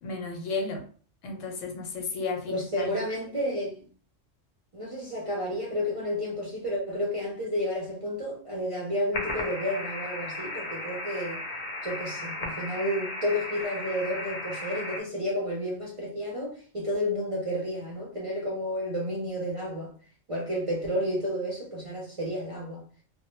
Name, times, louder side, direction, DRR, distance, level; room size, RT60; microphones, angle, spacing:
voice 1, 0.0-0.8 1.2-3.0, left 4 dB, 90° left, 1.0 m, -33 dB
voice 2, 2.5-3.8 4.7-11.4 11.8-19.9 20.3-22.8, equal, 45° right, 0.4 m, -31 dB
sound 1, 9.1-15.0, left 2 dB, 45° left, 0.5 m, -35 dB
2.1 x 2.0 x 3.0 m
omnidirectional pair, 1.3 m